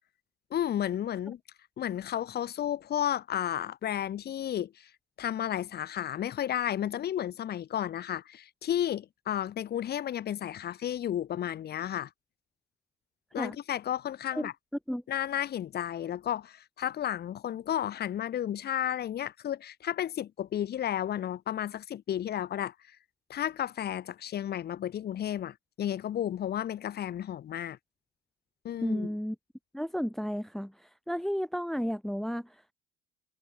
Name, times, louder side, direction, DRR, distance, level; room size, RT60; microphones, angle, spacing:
voice 1, 0.5-1.4 1.8-4.9 5.2-12.1 13.3-14.5 15.1-22.7 23.3-27.8 28.6-29.1, left 10 dB, 50° left, 1.8 m, -32 dB
voice 2, 28.8-29.4 29.7-32.6, equal, ahead, 1.5 m, -33 dB
cardioid pair, 100°, 21 cm